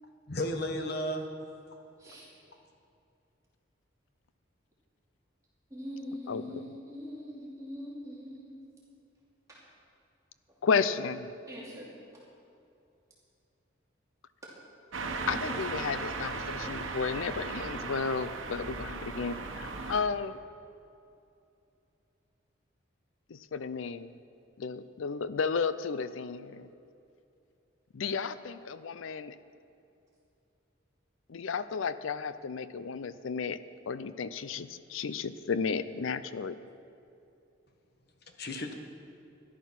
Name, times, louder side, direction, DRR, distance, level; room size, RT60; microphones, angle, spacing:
voice 1, 0.3-1.3 38.2-38.7, left 1 dB, 55° left, 4 dB, 1.3 m, -33 dB
voice 2, 5.7-8.6 9.5-9.6 11.5-11.9, equal, 15° right, -7 dB, 2.6 m, -42 dB
voice 3, 6.3-6.6 10.6-11.3 15.3-20.4 23.3-24.2 24.6-26.7 27.9-29.4 31.3-33.6 33.9-36.6, left 5 dB, 85° left, 14 dB, 0.5 m, -33 dB
sound 1, 14.9-20.0, right 3 dB, 85° right, 1.1 m, -37 dB
13.5 x 11.5 x 5.8 m, 2.6 s
head